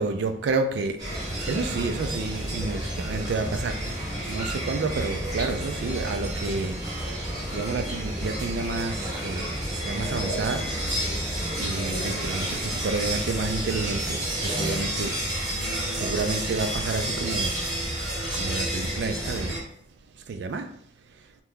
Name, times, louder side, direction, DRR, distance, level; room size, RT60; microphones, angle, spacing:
voice 1, 0.0-6.8 7.5-9.5 9.8-10.7 11.5-15.2 15.9-19.6 20.3-20.7, right 3 dB, 75° right, 0.4 m, -30 dB
sound 1, 1.0-19.6, right 1 dB, 20° right, 1.3 m, -30 dB
sound 2, 1.1-14.7, right 1 dB, 5° right, 0.5 m, -40 dB
2.9 x 2.2 x 3.6 m
head